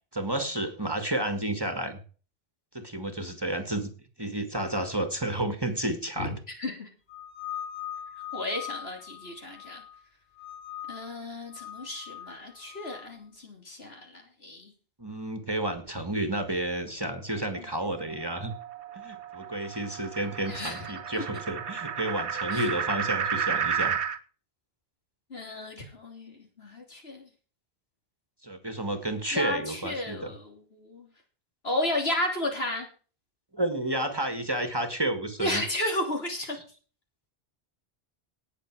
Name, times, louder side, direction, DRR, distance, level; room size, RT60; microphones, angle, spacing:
voice 1, 0.1-2.0 2.7-3.9 4.2-6.4 15.0-18.5 18.9-24.0 28.4-30.3 33.5-35.6, right 1 dB, 20° right, 8 dB, 1.8 m, -31 dB
sound 1, 7.1-10.0 10.4-11.1 11.5-13.0, left 10 dB, 40° left, 3.1 m, -41 dB
voice 2, 8.3-9.8 10.9-14.7 17.5-17.6 18.0-18.2 20.5-20.9 22.5-22.6 25.3-27.3 29.3-31.1 31.6-32.9 35.4-36.6, left 1 dB, 65° left, 2 dB, 3.5 m, -33 dB
sound 2, 17.5-24.2, right 7 dB, 80° right, 1.3 m, -32 dB
18.5 x 6.7 x 4.7 m, 0.38 s
omnidirectional pair, 1.1 m